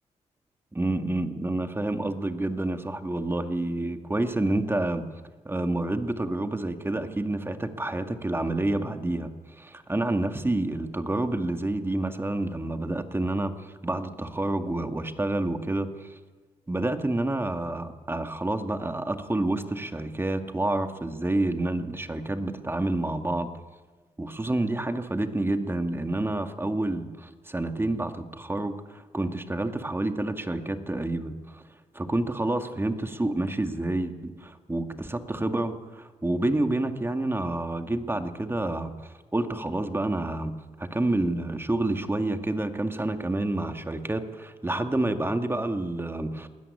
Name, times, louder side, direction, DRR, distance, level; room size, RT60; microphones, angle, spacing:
voice 1, 0.7-5.0 5.5-9.3 9.6-16.1 16.7-23.5 24.2-31.6 31.9-40.5 40.8-46.5, right 2 dB, 15° right, 7 dB, 2.0 m, -28 dB
19.5 x 13.5 x 9.7 m, 1.3 s
supercardioid pair, 55°, 14 cm